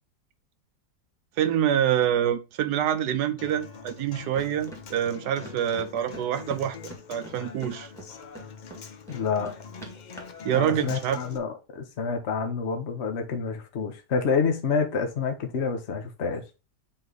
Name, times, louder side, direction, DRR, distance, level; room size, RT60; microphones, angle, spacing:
voice 1, 1.4-6.8 7.1-7.9 10.4-11.2, right 10 dB, 75° right, 1.2 m, -26 dB
Human voice / Acoustic guitar, 3.4-11.4, left 6 dB, 70° left, 0.4 m, -44 dB
sound 1, 4.3-11.0, right 2 dB, ahead, 1.8 m, -45 dB
voice 2, 9.1-9.5 10.5-16.4, left 5 dB, 45° left, 1.1 m, -28 dB
7.6 x 3.3 x 3.9 m
omnidirectional pair, 1.8 m